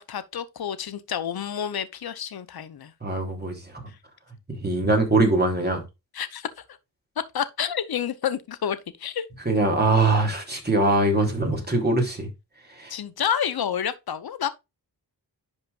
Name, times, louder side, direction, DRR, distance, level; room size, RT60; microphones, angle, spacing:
voice 1, 0.0-2.9 6.1-6.5 7.3-9.3 12.9-14.5, left 8 dB, 65° left, 0.9 m, -29 dB
voice 2, 3.0-3.6 4.5-5.8 9.4-12.3 12.8-12.9, right 2 dB, 25° right, 3.2 m, -22 dB
10.5 x 5.1 x 2.5 m
wide cardioid pair, 100°, 40 cm